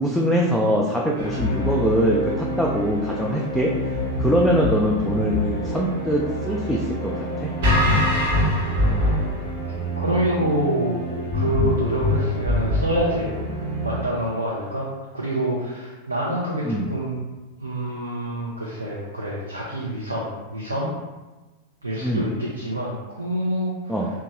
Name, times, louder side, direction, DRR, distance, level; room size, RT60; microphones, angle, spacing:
voice 1, 0.0-3.7 4.2-7.5 16.6-16.9 22.0-22.2 23.9-24.1, equal, ahead, -3 dB, 0.3 m, -22 dB
sound 1, 1.2-14.0, left 1 dB, 60° right, 1.1 m, -25 dB
voice 2, 10.0-11.0 11.3-13.3 13.8-14.9 15.1-17.2 17.6-20.9 21.8-23.9, right 1 dB, 85° right, -5 dB, 0.5 m, -26 dB
2.9 x 2.3 x 2.8 m, 1.2 s
figure-of-eight pair, 90°, 0 cm